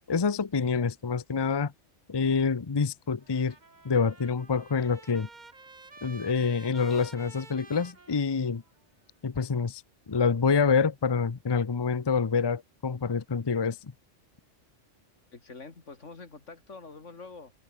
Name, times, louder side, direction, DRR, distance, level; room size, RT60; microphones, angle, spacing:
voice 1, 0.1-1.7 2.1-3.5 3.8-5.3 6.0-8.6 9.2-9.8 10.1-13.9, left 5 dB, 25° left, 0.6 m, -27 dB
Trumpet, 3.2-8.8, right 3 dB, 40° right, 2.0 m, -51 dB
voice 2, 15.3-17.5, left 4 dB, 85° left, 2.9 m, -46 dB
omnidirectional pair, 1.2 m